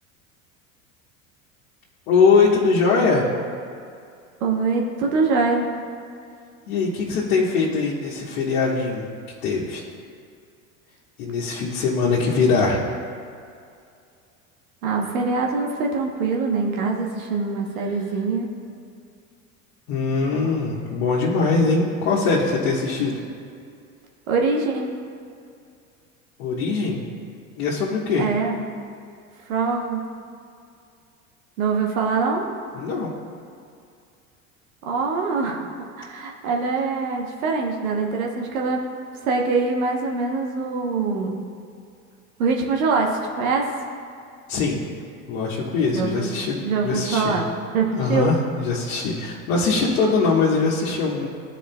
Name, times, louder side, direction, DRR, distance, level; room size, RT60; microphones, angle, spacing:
voice 1, 2.1-3.3 6.7-9.1 9.4-9.8 11.2-12.8 19.9-23.2 26.4-27.0 27.6-28.3 32.7-33.1 44.5-44.8 45.3-47.4 48.0-51.3, left 4 dB, 70° left, -6 dB, 1.4 m, -21 dB
voice 2, 4.4-5.7 14.8-18.5 24.3-24.9 28.2-28.6 29.5-30.0 31.6-32.4 34.9-35.7 36.0-38.8 39.2-41.3 42.4-43.7 45.9-46.2 46.6-47.5 47.7-48.3, right 4 dB, 80° right, 1 dB, 1.0 m, -23 dB
13.0 x 4.9 x 2.2 m, 2.4 s
hypercardioid pair, 80°, 41 cm